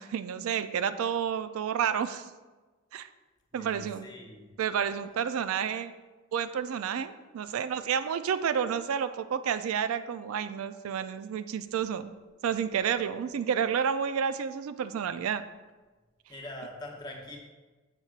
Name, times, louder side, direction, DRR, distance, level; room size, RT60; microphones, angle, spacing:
voice 1, 0.0-2.2 2.9-3.1 3.5-4.1 4.6-5.9 6.3-12.1 12.4-15.4, right 7 dB, 80° right, 12 dB, 0.3 m, -30 dB
voice 2, 3.5-4.5 16.3-17.4, left 1 dB, 20° left, -1 dB, 0.8 m, -43 dB
6.6 x 6.0 x 2.4 m, 1.2 s
head